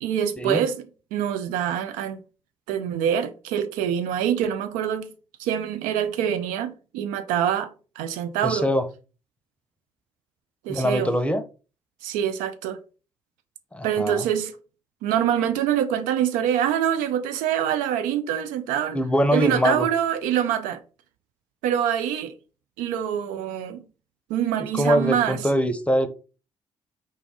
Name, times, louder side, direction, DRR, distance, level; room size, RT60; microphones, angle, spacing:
voice 1, 0.0-0.8 1.1-2.2 2.7-5.1 5.4-8.7 10.6-11.1 12.0-12.8 13.8-14.5 15.0-19.0 19.3-20.8 21.6-22.3 22.8-23.9 24.3-25.4, right 9 dB, 65° right, 0.5 m, -25 dB
voice 2, 8.4-8.9 10.7-11.4 13.7-14.3 18.9-19.9 24.6-26.1, equal, 10° left, 0.7 m, -23 dB
4.3 x 3.4 x 3.6 m
figure-of-eight pair, 40°, 15 cm